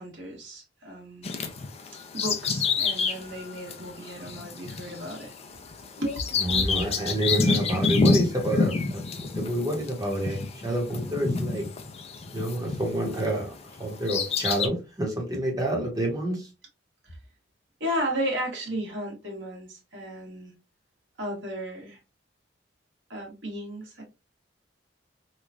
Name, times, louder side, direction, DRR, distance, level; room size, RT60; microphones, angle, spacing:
voice 1, 0.0-1.3 2.1-5.3 6.0-6.2 17.0-17.2 17.8-20.5 21.2-22.0 23.1-24.0, equal, 75° right, 1.4 m, -34 dB
Bird vocalization bird call bird song, 1.2-13.3 13.8-14.7, left 4 dB, 35° left, 0.4 m, -28 dB
voice 2, 6.4-11.6 12.3-13.5 13.8-16.5, right 1 dB, 20° right, 1.0 m, -28 dB
3.0 x 2.3 x 2.4 m
head